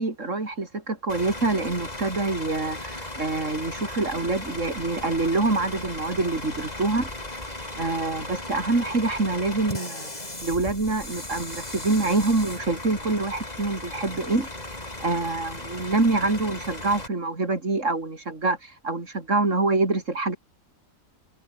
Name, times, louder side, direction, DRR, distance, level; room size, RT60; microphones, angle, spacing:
voice 1, 0.0-7.1 7.7-10.1 10.4-14.5 15.0-20.4, right 3 dB, 60° right, 4.5 m, -26 dB
Bus / Idling, 1.1-17.1, left 2 dB, 30° left, 3.8 m, -36 dB
omnidirectional pair, 1.5 m